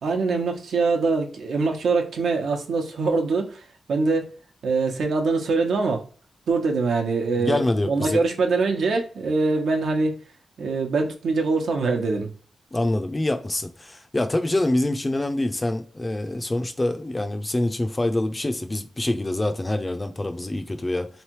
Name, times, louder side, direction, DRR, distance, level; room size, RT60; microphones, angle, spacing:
voice 1, 0.0-3.6 3.9-4.3 4.6-6.0 6.5-10.2 10.6-12.3, right 4 dB, 85° right, 0.9 m, -23 dB
voice 2, 7.4-8.2 12.7-21.1, left 1 dB, 20° left, 0.5 m, -25 dB
3.6 x 3.2 x 3.1 m
wide cardioid pair, 145°, 0 cm